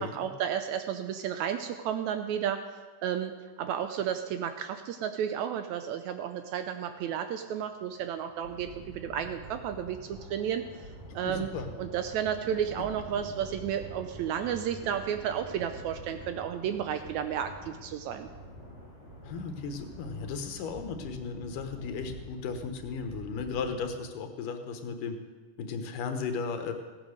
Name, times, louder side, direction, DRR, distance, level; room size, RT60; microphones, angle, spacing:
voice 1, 0.0-2.6 3.0-10.6 11.2-11.5 11.8-18.3, right 9 dB, 80° right, 8 dB, 1.8 m, -32 dB
sound 1, 7.1-23.4, equal, 45° left, 0.9 m, -50 dB
sound 2, 8.4-23.9, right 1 dB, 35° right, 4.7 m, -48 dB
voice 2, 11.1-11.7 19.2-25.2 25.6-26.7, left 5 dB, 80° left, 7 dB, 2.8 m, -35 dB
15.5 x 9.1 x 6.5 m, 1.3 s
omnidirectional pair, 3.7 m